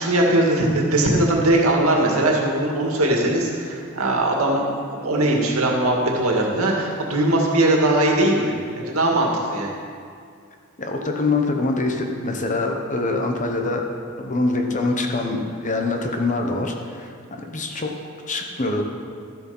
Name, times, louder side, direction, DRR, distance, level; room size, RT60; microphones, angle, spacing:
voice 1, 0.0-9.7, right 1 dB, 70° right, -1 dB, 2.0 m, -20 dB
voice 2, 10.8-13.9 14.2-17.9 18.3-18.8, left 2 dB, 35° left, 3 dB, 1.0 m, -24 dB
12.5 x 7.9 x 5.5 m, 2.2 s
head